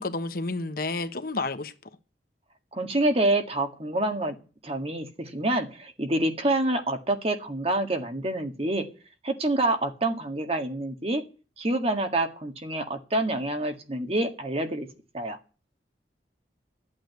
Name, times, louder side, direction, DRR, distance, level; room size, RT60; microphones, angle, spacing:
voice 1, 0.0-1.7, left 3 dB, 55° left, 1.1 m, -30 dB
voice 2, 2.7-4.4 4.6-8.9 9.2-11.2 11.6-14.9 15.1-15.4, right 1 dB, 35° right, 1.8 m, -27 dB
13.0 x 8.9 x 9.5 m
head